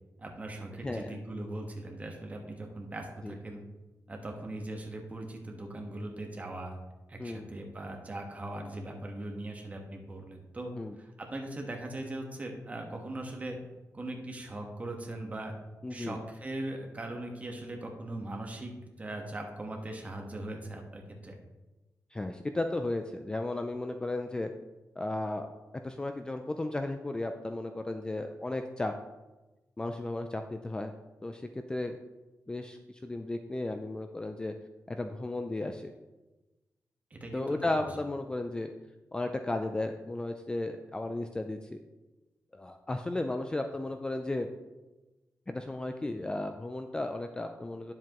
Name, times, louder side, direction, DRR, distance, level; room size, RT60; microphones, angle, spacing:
voice 1, 0.2-3.6 4.1-6.8 7.1-13.6 13.9-15.5 15.9-18.7 19.0-21.3 37.1-37.8, right 1 dB, 25° right, 2 dB, 1.3 m, -40 dB
voice 2, 0.8-1.2 3.2-3.3 7.2-7.5 10.8-11.0 15.8-16.2 22.1-24.5 25.0-25.5 25.8-28.9 29.8-30.9 31.2-32.0 32.5-34.5 34.9-35.9 37.3-38.7 39.1-41.8 42.5-44.5 45.5-47.9, left 2 dB, 15° left, 6 dB, 0.4 m, -34 dB
10.0 x 7.5 x 3.0 m, 1.1 s
wide cardioid pair, 165°, 6 cm